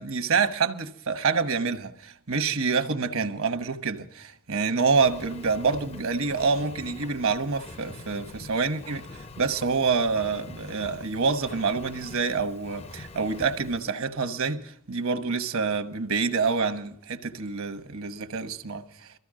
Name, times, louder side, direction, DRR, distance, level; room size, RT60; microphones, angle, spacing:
voice 1, 0.0-19.1, right 4 dB, 70° right, 1.1 m, -27 dB
Engine, 4.9-13.8, left 3 dB, 30° left, 0.5 m, -44 dB
22.5 x 14.5 x 3.7 m
head